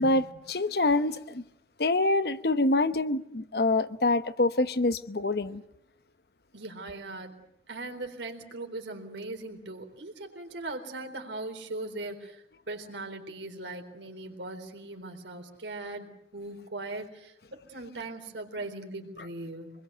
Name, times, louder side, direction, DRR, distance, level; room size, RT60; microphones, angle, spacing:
voice 1, 0.0-1.4 1.8-5.6, left 2 dB, 60° left, 0.9 m, -26 dB
voice 2, 6.5-7.4 7.7-19.7, right 2 dB, 85° right, 3.9 m, -39 dB
26.0 x 21.5 x 8.0 m
head